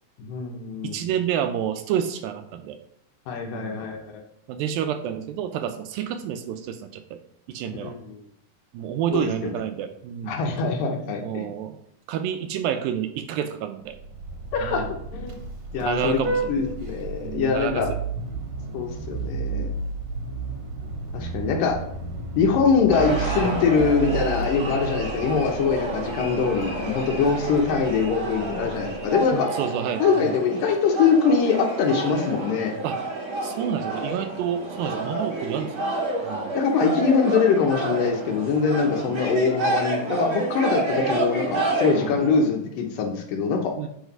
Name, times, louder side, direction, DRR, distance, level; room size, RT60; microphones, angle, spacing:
voice 1, 0.2-1.0 3.3-4.2 7.8-7.9 9.1-9.5 10.2-11.5 14.5-14.8 15.1-15.4 15.7-16.2 16.5-17.9 18.7-19.7 21.1-21.8 22.3-29.5 30.0-32.7 36.5-43.7, left 5 dB, 70° left, 2 dB, 2.4 m, -23 dB
voice 2, 0.8-2.8 3.4-3.8 4.5-7.2 7.5-8.0 8.7-10.4 11.2-11.8 12.1-14.0 14.6-14.9 15.8-16.7 17.2-17.8 18.3-18.5 29.3-30.4 32.8-33.0 33.4-36.5 41.9-42.1 43.8-43.9, right 9 dB, 80° right, 8 dB, 2.2 m, -29 dB
Vehicle horn car horn honking, 13.9-29.3, right 3 dB, 65° right, 2.0 m, -33 dB
sound 1, 22.9-42.4, right 2 dB, 40° right, 1.0 m, -29 dB
8.0 x 4.8 x 5.3 m, 0.74 s
omnidirectional pair, 4.4 m